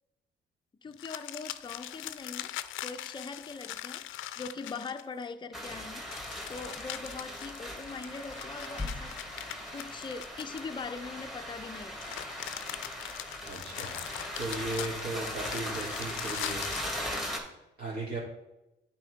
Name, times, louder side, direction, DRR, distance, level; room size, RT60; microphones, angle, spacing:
voice 1, 0.8-2.5 2.8-6.1 6.5-9.1 9.7-12.2, left 4 dB, 25° left, 0.5 m, -41 dB
sound 1, 0.9-5.2 6.1-11.0 11.7-16.9, left 13 dB, 85° left, 0.5 m, -41 dB
sound 2, 5.5-17.4, left 1 dB, ahead, 2.0 m, -39 dB
voice 2, 13.4-17.4 17.8-18.2, right 2 dB, 50° right, 2.7 m, -38 dB
9.0 x 4.3 x 5.1 m
cardioid pair, 90°, 20 cm